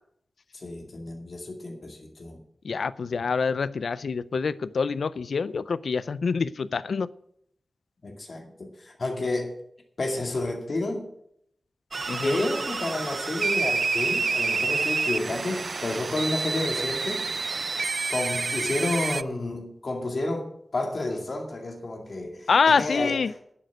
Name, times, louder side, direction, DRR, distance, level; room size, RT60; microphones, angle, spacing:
voice 1, 0.5-2.4 8.0-9.6 10.0-11.1 12.2-17.3 18.1-23.4, left 2 dB, 55° left, 2.2 m, -30 dB
voice 2, 2.6-7.1 12.1-12.4 22.5-23.3, left 5 dB, 90° left, 0.4 m, -26 dB
sound 1, 11.9-19.2, right 4 dB, 55° right, 0.4 m, -28 dB
11.0 x 6.5 x 9.3 m
wide cardioid pair, 105°, 0 cm